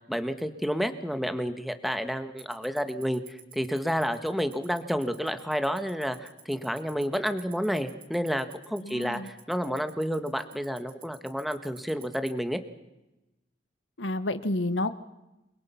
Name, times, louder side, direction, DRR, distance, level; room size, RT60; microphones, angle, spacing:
voice 1, 0.1-12.6, equal, ahead, 9 dB, 1.6 m, -30 dB
Tick-tock, 2.4-12.3, right 9 dB, 30° right, 3.1 m, -47 dB
voice 2, 8.8-9.3 14.0-15.0, left 2 dB, 80° left, 12 dB, 1.5 m, -30 dB
29.0 x 23.0 x 5.9 m, 0.95 s
head